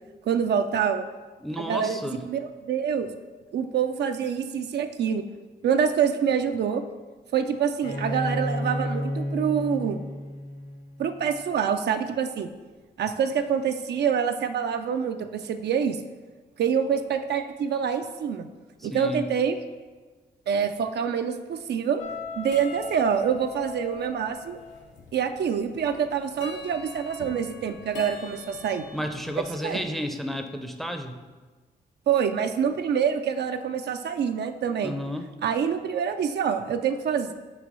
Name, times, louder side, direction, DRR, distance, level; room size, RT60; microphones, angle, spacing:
voice 1, 0.3-1.0 1.6-2.0 2.3-3.1 3.5-5.2 5.6-6.8 7.3-10.0 11.0-12.5 13.0-16.0 16.6-18.5 18.8-19.6 20.5-22.0 22.4-24.6 25.1-28.8 29.6-29.8 32.1-34.9 35.4-37.3, right 7 dB, 65° right, 7 dB, 0.4 m, -26 dB
voice 2, 1.4-2.2 18.8-19.3 28.9-31.2 34.8-35.3, equal, ahead, 6 dB, 0.6 m, -32 dB
Bowed string instrument, 7.8-11.4, left 1 dB, 50° left, 1.0 m, -31 dB
sound 1, 22.0-29.9, left 5 dB, 80° left, 0.9 m, -41 dB
6.3 x 3.0 x 5.4 m, 1.3 s
cardioid pair, 70°, 18 cm